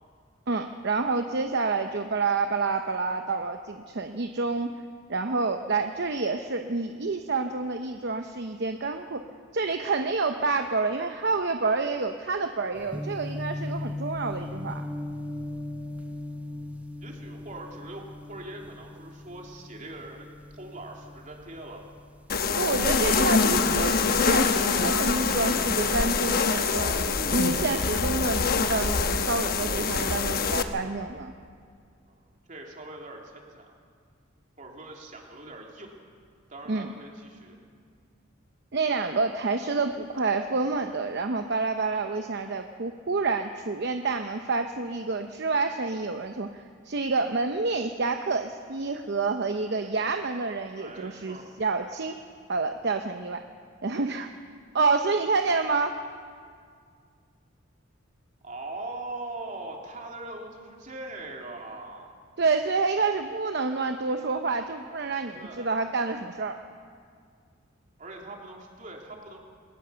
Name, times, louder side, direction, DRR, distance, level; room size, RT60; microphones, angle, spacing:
voice 1, 0.5-4.7 5.1-9.2 9.5-14.8 22.6-31.3 36.7-36.9 38.7-52.2 52.5-53.4 53.8-54.3 54.7-55.9 62.4-66.6, right 4 dB, 55° right, 6 dB, 0.8 m, -28 dB
acoustic guitar in tunnel, 12.7-22.8 23.1-23.9, left 1 dB, 5° right, 0.8 m, -38 dB
voice 2, 17.0-21.8 32.1-33.7 34.6-35.9 36.5-37.6 50.8-51.5 55.4-55.6 58.4-62.1 65.3-65.7 68.0-69.4, right 2 dB, 40° right, 0 dB, 3.0 m, -41 dB
sound 1, 22.3-30.6, left 4 dB, 50° left, 1.1 m, -25 dB
20.5 x 18.5 x 6.9 m, 2.1 s
head